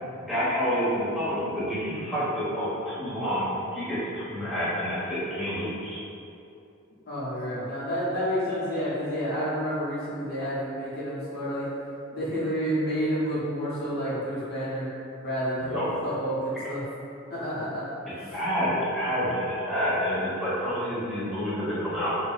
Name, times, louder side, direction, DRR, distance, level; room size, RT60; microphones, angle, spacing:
voice 1, 0.1-3.4 3.7-6.0 15.7-15.8 18.3-22.1, equal, ahead, -12 dB, 1.3 m, -28 dB
voice 2, 7.1-11.7 12.1-14.9 15.2-16.8 17.3-18.3, equal, 50° left, -9 dB, 0.8 m, -30 dB
3.9 x 3.2 x 2.4 m, 2.7 s
head